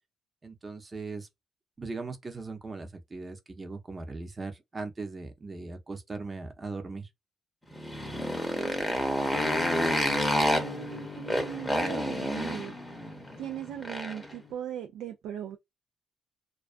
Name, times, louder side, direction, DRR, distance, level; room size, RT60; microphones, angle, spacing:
voice 1, 0.4-1.3 1.8-7.1, right 3 dB, 30° right, 0.7 m, -39 dB
Motorcycle, 7.7-14.3, equal, 5° left, 0.7 m, -29 dB
voice 2, 8.1-9.8 10.2-12.8 13.4-15.6, right 10 dB, 85° right, 0.4 m, -40 dB
Acoustic guitar, 9.3-14.5, left 8 dB, 55° left, 0.4 m, -42 dB
2.3 x 2.3 x 2.4 m
cardioid pair, 90°, 0 cm